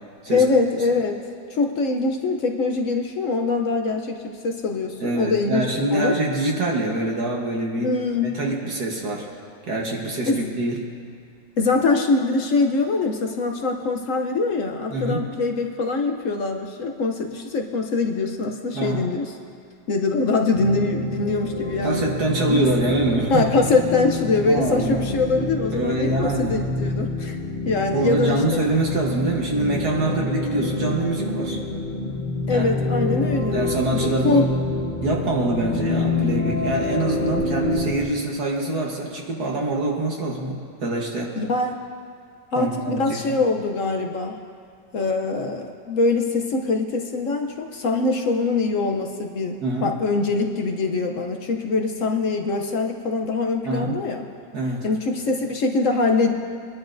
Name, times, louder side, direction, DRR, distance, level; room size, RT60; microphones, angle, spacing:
voice 1, 0.3-1.2 1.5-6.2 7.8-8.4 10.3-10.5 11.6-19.3 19.9-22.0 22.5-22.7 23.3-27.4 27.7-28.6 32.5-33.6 33.9-34.5 41.4-41.8 42.5-44.4 44.9-54.3 54.8-56.3, left 3 dB, 60° left, 3 dB, 0.9 m, -23 dB
voice 2, 5.0-7.9 8.2-9.3 9.7-10.8 14.9-15.2 18.7-19.1 21.8-23.6 24.5-25.0 25.7-26.6 27.9-31.6 32.5-32.7 33.5-34.5 35.0-41.4 42.6-43.4 49.6-49.9 53.6-54.0 54.5-54.9, right 2 dB, 60° right, -2 dB, 1.7 m, -25 dB
sound 1, 20.5-37.9, left 2 dB, 35° left, 0.9 m, -27 dB
23.5 x 11.0 x 2.6 m, 2.3 s
omnidirectional pair, 2.0 m